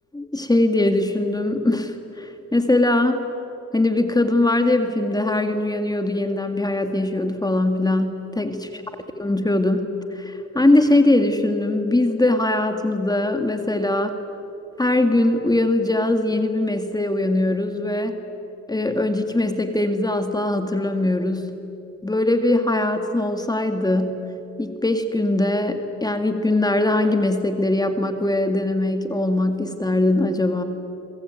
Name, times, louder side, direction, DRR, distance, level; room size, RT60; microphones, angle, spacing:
voice 1, 0.1-3.2 3.7-8.7 9.2-14.2 14.8-18.1 18.7-21.6 22.0-24.3 24.6-30.6, left 2 dB, 15° left, 7 dB, 2.0 m, -21 dB
28.0 x 22.5 x 9.2 m, 2.9 s
cardioid pair, 90°, 30 cm